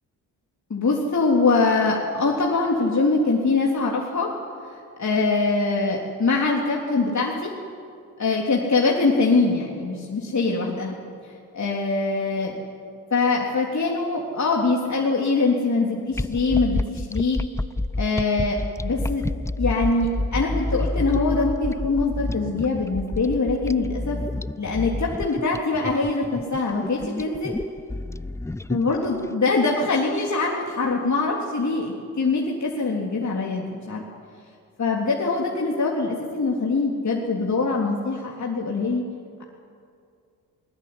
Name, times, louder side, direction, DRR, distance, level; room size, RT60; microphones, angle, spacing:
voice 1, 0.7-4.3 5.0-7.5 8.2-11.0 11.2-12.5 13.1-17.4 18.0-18.6 18.8-19.3 19.6-24.2 24.6-27.5 28.7-34.0 34.8-39.0, left 3 dB, 40° left, -2 dB, 3.6 m, -23 dB
sound 1, 16.1-29.2, left 2 dB, 5° left, 0.6 m, -29 dB
20.0 x 20.0 x 9.8 m, 2.4 s
hypercardioid pair, 45°, 43 cm